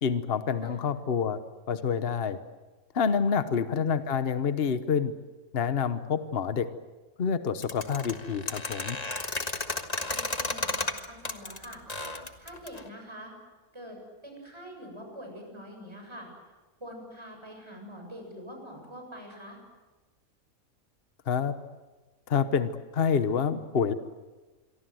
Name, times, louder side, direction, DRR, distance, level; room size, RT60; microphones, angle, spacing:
voice 1, 0.0-1.4 1.7-2.4 2.9-5.1 5.5-6.7 7.2-9.0 21.3-21.5 22.3-23.9, left 6 dB, 45° left, 11 dB, 1.2 m, -27 dB
voice 2, 3.4-3.8 10.1-11.8 12.4-13.3 13.7-16.6 16.8-19.6, equal, 20° right, 2 dB, 7.3 m, -45 dB
sound 1, 7.6-12.9, left 2 dB, 30° left, 1.6 m, -33 dB
27.5 x 23.5 x 7.8 m, 1.2 s
omnidirectional pair, 1.5 m